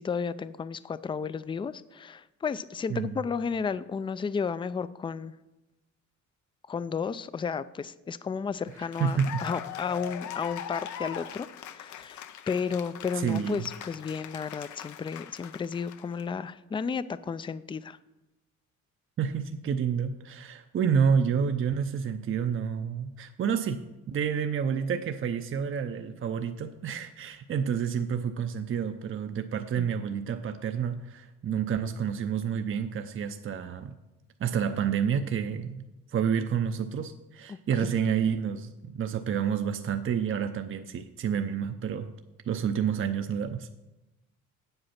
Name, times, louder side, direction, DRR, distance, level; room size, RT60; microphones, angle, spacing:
voice 1, 0.0-5.3 6.7-18.0 29.8-29.9 37.5-37.9, left 6 dB, 15° left, 16 dB, 0.3 m, -33 dB
voice 2, 2.9-3.2 8.8-9.4 13.1-13.7 19.2-23.8 24.1-33.9 34.4-35.8 36.1-42.1 42.5-43.7, right 7 dB, 45° right, 7 dB, 0.6 m, -29 dB
Cheering / Applause, 8.7-16.2, left 9 dB, 75° left, 0.7 m, -41 dB
7.9 x 7.8 x 5.8 m, 1.0 s
cardioid pair, 90°, 30 cm